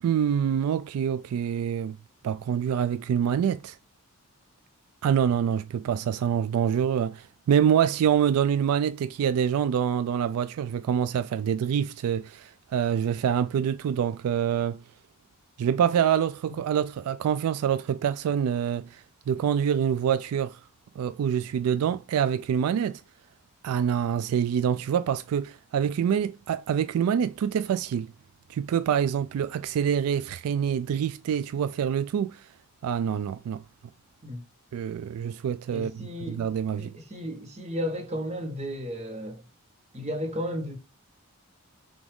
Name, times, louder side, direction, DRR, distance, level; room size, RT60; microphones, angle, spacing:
voice 1, 0.0-2.0 2.2-3.8 5.0-14.8 15.6-20.6 21.0-23.0 23.6-28.1 28.5-32.4 32.8-33.6 34.7-36.9, right 8 dB, 80° right, 0.3 m, -26 dB
voice 2, 35.7-36.5 36.8-39.5 39.9-40.8, equal, 30° right, 1.1 m, -34 dB
6.0 x 2.4 x 3.5 m
head